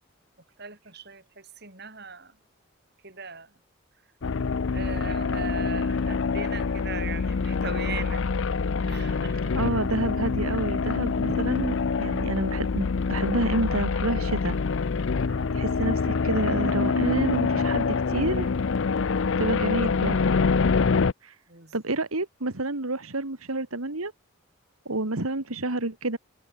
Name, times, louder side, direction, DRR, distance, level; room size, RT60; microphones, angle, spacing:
voice 1, 0.6-2.4 3.0-3.6 4.7-8.4 8.8-9.6 11.3-11.4 15.2-15.5 21.5-21.8, right 5 dB, 50° right, 5.9 m, -39 dB
sound 1, 4.2-21.1, left 4 dB, 60° left, 0.5 m, -25 dB
voice 2, 9.5-14.6 15.5-18.5 19.4-20.2 21.2-21.4 21.7-24.1 24.9-26.2, right 2 dB, 80° right, 2.1 m, -29 dB
head